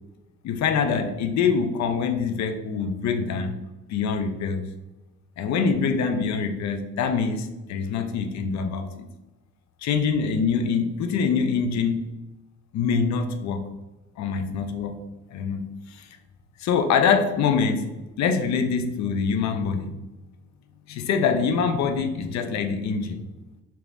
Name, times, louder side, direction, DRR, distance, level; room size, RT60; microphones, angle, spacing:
voice 1, 0.4-3.6 3.9-4.7 5.4-9.1 9.8-12.0 12.7-13.6 14.2-15.0 15.3-16.1 16.6-17.9 18.2-20.0 20.9-23.3, left 5 dB, 65° left, 7 dB, 0.5 m, -24 dB
3.3 x 2.9 x 2.5 m, 1.0 s
cardioid pair, 90°, 30 cm